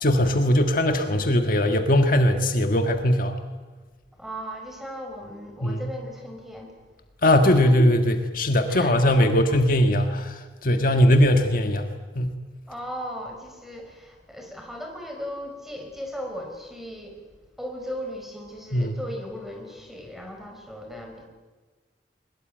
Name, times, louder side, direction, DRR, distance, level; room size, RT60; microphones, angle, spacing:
voice 1, 0.0-3.4 5.6-5.8 7.2-12.3 18.7-18.9, left 1 dB, 50° left, 5 dB, 1.6 m, -20 dB
voice 2, 4.2-6.7 7.6-7.7 8.7-9.2 12.7-17.2 17.6-21.2, equal, ahead, 3 dB, 4.8 m, -37 dB
23.0 x 21.5 x 9.1 m, 1.3 s
head